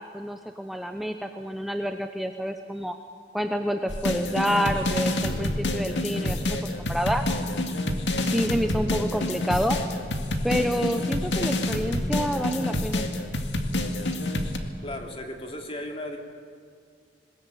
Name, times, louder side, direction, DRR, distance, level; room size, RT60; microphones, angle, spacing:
voice 1, 0.0-2.9 3.3-7.2 8.2-9.8 10.4-13.1, equal, ahead, 5 dB, 0.8 m, -28 dB
sound 1, 3.9-14.6, left 1 dB, 80° left, 2.1 m, -28 dB
voice 2, 14.8-16.2, left 1 dB, 35° left, 2 dB, 2.7 m, -35 dB
21.5 x 20.5 x 9.1 m, 2.1 s
head